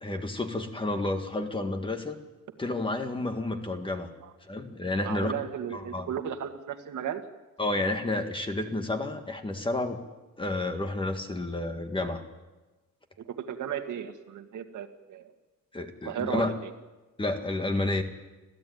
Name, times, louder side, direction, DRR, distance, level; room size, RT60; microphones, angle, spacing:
voice 1, 0.0-2.2 2.6-4.1 4.5-5.4 5.7-6.1 7.6-10.0 10.4-12.2 15.7-16.5 17.2-18.0, left 2 dB, 15° left, 6 dB, 1.7 m, -30 dB
voice 2, 5.0-7.2 13.3-15.2 16.0-16.7, right 8 dB, 60° right, 6 dB, 2.1 m, -35 dB
26.0 x 15.5 x 9.5 m, 1.2 s
cardioid pair, 165°, 34 cm